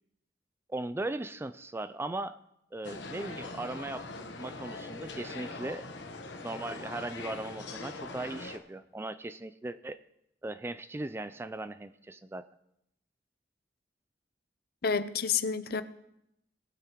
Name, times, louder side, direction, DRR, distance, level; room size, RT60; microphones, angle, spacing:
voice 1, 0.7-2.4 2.7-4.1 4.4-5.9 6.4-10.0 10.4-12.5, right 2 dB, 15° right, 0.3 m, -38 dB
sound 1, 2.8-8.6, left 3 dB, 80° left, 1.2 m, -42 dB
voice 2, 14.8-15.8, left 6 dB, 60° left, 0.6 m, -29 dB
20.5 x 8.9 x 3.0 m
head